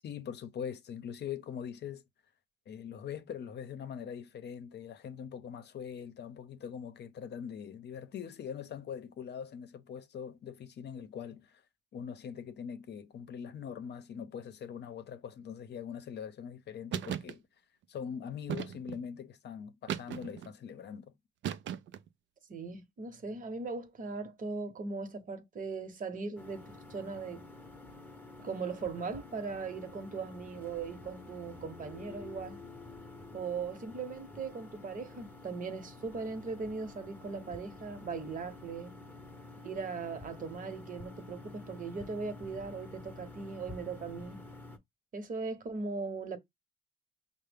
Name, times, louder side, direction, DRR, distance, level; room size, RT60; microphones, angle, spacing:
voice 1, 0.0-2.1 2.7-11.6 11.9-17.4 17.9-21.2, left 8 dB, 60° left, 0.7 m, -42 dB
sound 1, 16.9-17.4 18.5-19.1 19.9-20.5 21.4-22.1, right 9 dB, 70° right, 0.4 m, -37 dB
voice 2, 22.5-27.5 28.4-32.6 33.3-39.0 39.6-44.4 45.1-46.4, right 4 dB, 40° right, 0.9 m, -39 dB
sound 2, 26.4-44.8, left 2 dB, 10° left, 0.8 m, -49 dB
5.5 x 2.1 x 3.4 m
cardioid pair, 90°, 20 cm